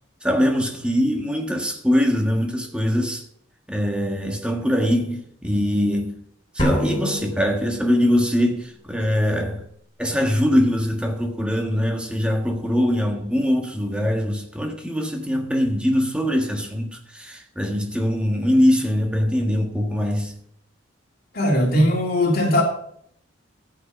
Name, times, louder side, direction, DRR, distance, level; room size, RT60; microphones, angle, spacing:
voice 1, 0.2-3.2 3.7-6.1 6.5-9.6 10.0-20.3, equal, 5° right, 1.5 m, -22 dB
sound 1, 6.6-8.3, equal, 25° left, 3.5 m, -27 dB
voice 2, 21.3-22.6, left 1 dB, 50° left, 2.9 m, -19 dB
13.0 x 8.7 x 5.4 m
head